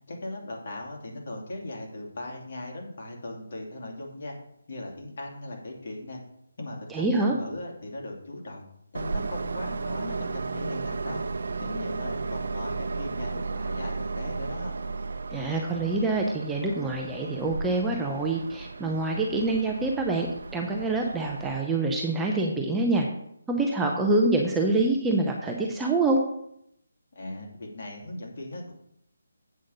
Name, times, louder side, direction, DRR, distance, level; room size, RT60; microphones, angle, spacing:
voice 1, 0.1-4.4 4.7-6.2 6.6-8.6 8.9-11.2 11.6-14.8 27.1-28.7, left 2 dB, 50° left, -1 dB, 2.8 m, -38 dB
voice 2, 6.9-7.3 15.3-20.3 20.5-23.1 23.5-26.2, right 2 dB, 5° right, 0 dB, 0.7 m, -26 dB
Train, 8.9-21.6, right 4 dB, 65° right, 0.7 m, -34 dB
8.2 x 5.0 x 6.6 m, 0.73 s
figure-of-eight pair, 165°, 0 cm